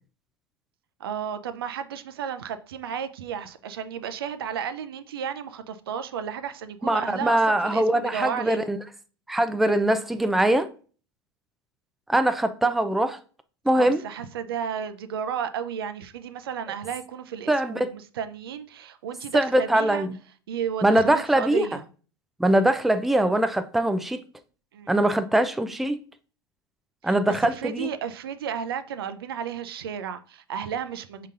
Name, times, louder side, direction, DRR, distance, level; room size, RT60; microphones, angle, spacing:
voice 1, 1.0-8.7 13.7-20.1 20.5-21.8 24.7-25.0 27.0-31.3, right 8 dB, 70° right, 0.5 m, -33 dB
voice 2, 6.8-8.8 9.3-10.7 12.1-13.2 13.7-14.0 17.5-17.9 19.3-20.2 20.8-21.7 22.4-24.2 24.9-26.0 27.0-27.9, right 1 dB, ahead, 0.4 m, -22 dB
5.2 x 3.8 x 2.5 m
figure-of-eight pair, 85°, 13 cm